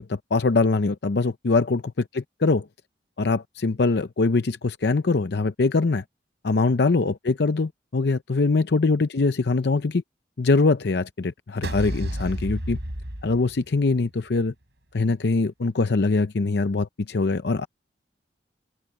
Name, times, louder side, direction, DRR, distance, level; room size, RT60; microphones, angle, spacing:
voice 1, 0.0-2.7 3.2-6.0 6.4-10.0 10.4-12.8 13.2-14.5 14.9-17.7, left 3 dB, 70° left, 0.6 m, -23 dB
sound 1, 11.6-14.0, equal, 75° right, 5.5 m, -31 dB
head